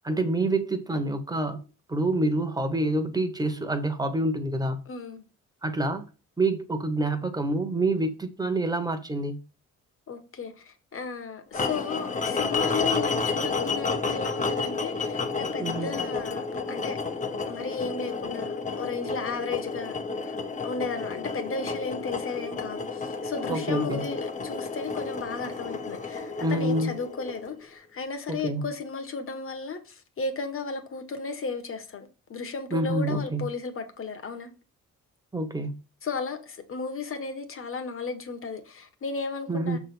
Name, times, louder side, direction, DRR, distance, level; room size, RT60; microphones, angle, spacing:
voice 1, 0.0-1.6 1.9-4.8 5.6-6.1 6.4-9.4 15.6-15.9 23.5-24.0 26.4-27.0 28.3-28.7 32.7-33.5 35.3-35.8 39.5-39.8, right 2 dB, 15° right, 1.2 m, -27 dB
voice 2, 4.8-5.2 10.1-17.0 17.4-20.0 20.2-20.3 20.6-34.5 36.0-39.8, left 4 dB, 45° left, 1.5 m, -34 dB
sound 1, 11.5-27.6, left 4 dB, 25° left, 1.0 m, -31 dB
6.3 x 3.6 x 6.1 m
cardioid pair, 90°, 30 cm